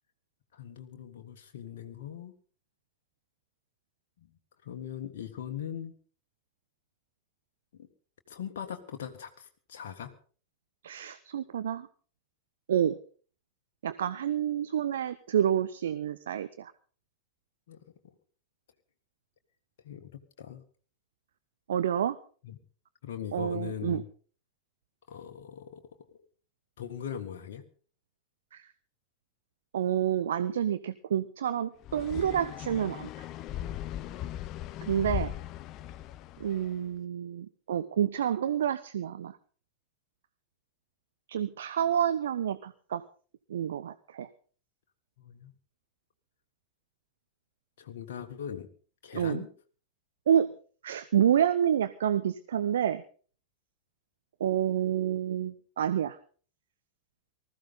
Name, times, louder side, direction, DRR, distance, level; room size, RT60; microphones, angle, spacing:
voice 1, 0.5-2.3 4.2-4.3 4.6-5.9 7.8-7.9 8.3-10.1 17.7-17.8 19.8-20.6 22.4-22.6 23.0-24.0 25.1-25.9 26.8-27.6 45.2-45.5 47.8-48.7 49.0-49.5, left 9 dB, 55° left, 4 dB, 1.7 m, -40 dB
voice 2, 10.8-11.9 12.7-13.0 13.8-16.7 21.7-22.2 23.3-24.0 28.5-28.6 29.7-33.1 34.8-35.3 36.4-39.4 41.3-43.0 43.5-44.3 49.1-49.4 50.3-50.5 50.8-53.0 54.4-56.2, right 9 dB, 65° right, 13 dB, 0.7 m, -28 dB
sound 1, 31.8-36.7, left 12 dB, 35° left, 0.7 m, -38 dB
19.5 x 14.0 x 3.9 m, 0.41 s
figure-of-eight pair, 90°, 0 cm